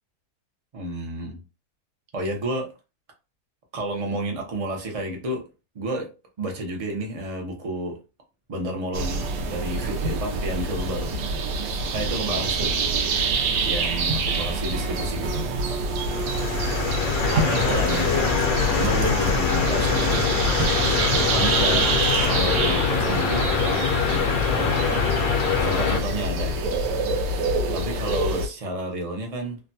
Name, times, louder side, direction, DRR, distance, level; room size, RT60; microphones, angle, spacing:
voice 1, 0.7-1.4 2.1-2.7 3.7-5.4 5.7-6.1 6.4-8.0 8.5-11.1 11.6-12.7 13.6-15.4 17.3-18.3 18.7-20.2 20.8-21.9 22.2-25.1 25.6-26.8 27.2-29.6, right 1 dB, 45° right, 0.4 m, -31 dB
sound 1, 8.9-28.5, right 2 dB, 85° right, 1.2 m, -26 dB
sound 2, 16.0-26.0, left 5 dB, 70° left, 1.0 m, -24 dB
sound 3, 17.4-22.8, right 1 dB, 65° right, 1.1 m, -33 dB
3.2 x 2.1 x 2.7 m
omnidirectional pair, 1.8 m